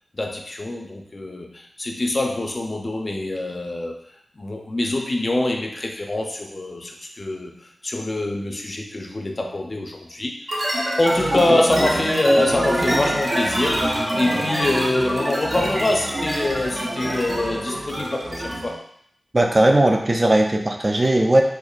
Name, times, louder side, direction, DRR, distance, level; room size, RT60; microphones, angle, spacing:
voice 1, 0.1-4.0 4.4-18.8, left 1 dB, 50° left, 2 dB, 0.5 m, -25 dB
sound 1, 10.5-18.8, right 1 dB, 55° right, 1.0 m, -25 dB
voice 2, 19.3-21.4, right 1 dB, 40° right, 3 dB, 0.5 m, -17 dB
4.3 x 2.5 x 2.4 m, 0.67 s
cardioid pair, 40°, 0 cm